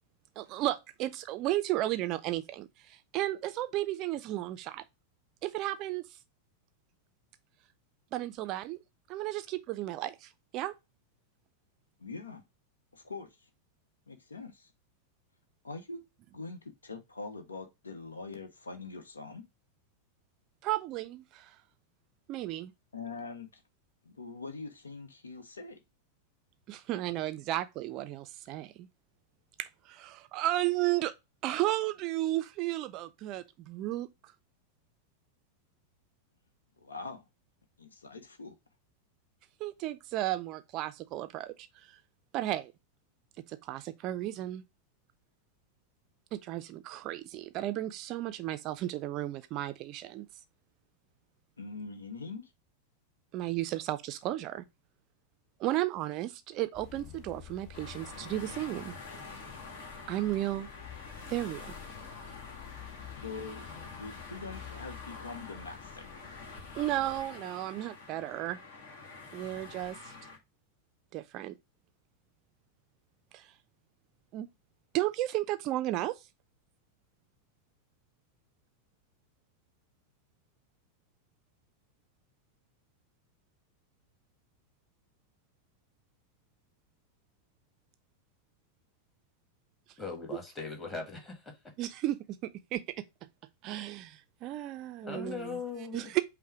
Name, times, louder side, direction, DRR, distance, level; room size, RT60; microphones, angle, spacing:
voice 1, 0.4-4.8 5.4-6.2 8.1-8.8 9.1-10.7 20.6-21.6 22.3-22.7 26.7-28.9 29.6-31.1 31.4-34.3 39.6-41.9 42.3-42.7 43.5-44.6 46.3-50.3 53.3-54.6 55.6-58.9 60.1-60.7 61.3-61.7 66.8-68.6 69.3-70.1 71.1-71.5 73.3-73.5 74.3-74.5 74.9-76.2 91.8-93.1 93.6-95.6 95.9-96.2, right 15 dB, 40° right, 0.4 m, -34 dB
voice 2, 12.0-12.4 12.9-13.5 14.1-14.7 15.6-16.0 16.3-19.5 22.9-23.5 24.0-25.8 36.8-37.3 37.8-38.5 51.6-52.5 63.2-66.1, left 4 dB, 75° left, 0.8 m, -43 dB
sound 1, 56.7-67.3, left 10 dB, 40° left, 0.8 m, -50 dB
sound 2, 57.7-70.4, left 3 dB, 55° left, 1.5 m, -47 dB
voice 3, 90.0-91.5 95.0-96.1, left 4 dB, 15° left, 1.5 m, -39 dB
5.4 x 2.1 x 4.5 m
figure-of-eight pair, 90°, 0 cm